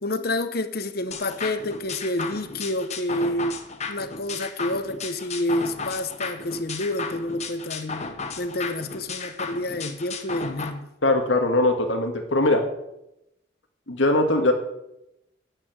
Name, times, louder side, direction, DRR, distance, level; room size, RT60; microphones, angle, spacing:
voice 1, 0.0-3.6 3.9-8.1 8.4-10.9, left 1 dB, 55° left, 0.9 m, -28 dB
sound 1, 1.1-10.7, left 4 dB, 35° left, 1.2 m, -34 dB
voice 2, 11.0-12.6 13.9-14.5, left 2 dB, 80° left, 1.9 m, -21 dB
10.0 x 8.4 x 9.0 m
head